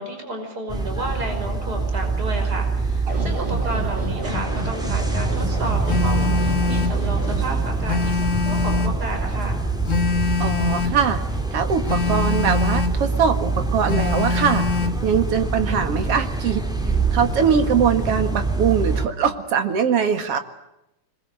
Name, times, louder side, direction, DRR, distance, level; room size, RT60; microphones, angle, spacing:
voice 1, 0.0-9.6, right 1 dB, 30° right, 4 dB, 6.2 m, -31 dB
sound 1, 0.7-19.1, right 3 dB, ahead, 2.5 m, -25 dB
sound 2, 3.1-7.4, right 1 dB, 80° right, 6.4 m, -30 dB
Telephone, 5.9-7.0 7.9-9.0 9.9-11.0 11.9-13.0 13.9-15.0, left 5 dB, 90° left, 0.6 m, -24 dB
voice 2, 10.4-11.2 11.5-14.7 15.0-16.6 17.1-20.4, right 7 dB, 50° right, 8 dB, 2.6 m, -22 dB
25.5 x 21.5 x 8.0 m, 0.87 s
omnidirectional pair, 3.6 m